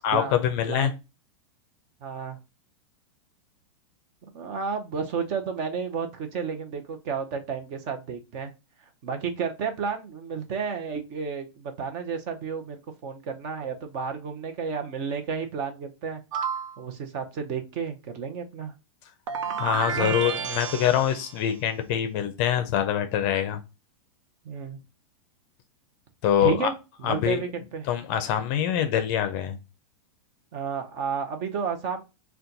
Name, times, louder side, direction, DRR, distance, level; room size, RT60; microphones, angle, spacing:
voice 1, 0.0-0.9 19.6-23.6 26.2-26.7 27.0-27.4 27.8-29.6, left 10 dB, 35° left, 8 dB, 0.5 m, -24 dB
voice 2, 2.0-2.4 4.3-8.5 9.0-16.2 16.8-18.7 19.9-20.2 24.4-24.8 26.4-26.7 27.0-27.9 30.5-32.0, right 6 dB, 35° right, 6 dB, 0.7 m, -32 dB
sound 1, 16.3-16.8 19.3-21.4, right 7 dB, 80° right, 0.6 m, -31 dB
4.2 x 2.3 x 3.9 m, 0.28 s
supercardioid pair, 160°, 16 cm